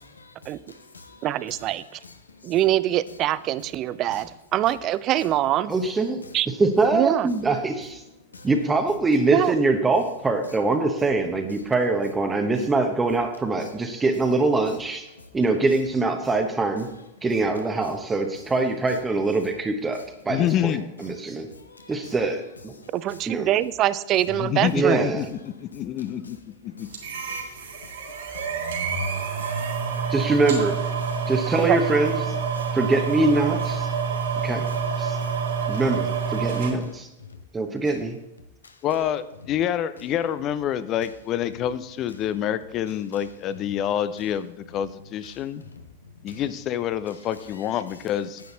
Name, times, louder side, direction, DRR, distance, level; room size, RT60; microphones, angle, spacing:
voice 1, 0.0-1.6 1.9-2.5 4.1-4.2 8.3-8.5 15.2-15.3 16.9-17.0 19.9-20.1 21.4-22.1 22.7-23.2 25.7-26.4 26.6-30.1 31.0-31.3 32.5-32.8 33.8-34.0 34.4-35.8 37.2-37.4 38.6-38.8 43.1-43.2 43.5-43.6 44.2-44.3 45.3-46.4 47.3-48.1, left 3 dB, 75° left, 1.1 m, -49 dB
voice 2, 1.2-2.0 2.4-5.7 6.3-6.5 6.9-7.3 9.3-9.5 22.9-25.1 31.6-31.8, right 13 dB, 35° right, 0.5 m, -24 dB
voice 3, 5.7-6.2 6.6-8.0 8.4-15.1 15.3-16.9 17.2-21.5 21.9-22.7 23.3-23.5 24.7-25.3 30.1-30.8 31.3-32.4 32.7-33.9 34.4-34.6 35.0-35.2 35.7-37.1 37.5-38.2, right 3 dB, 15° right, 1.0 m, -23 dB
voice 4, 20.3-20.9 24.4-26.4 26.6-26.9 38.8-45.6 46.2-48.4, left 10 dB, 35° left, 0.6 m, -27 dB
sound 1, 26.9-36.7, right 6 dB, 65° right, 2.9 m, -27 dB
10.5 x 8.4 x 4.0 m
figure-of-eight pair, 90°, 0 cm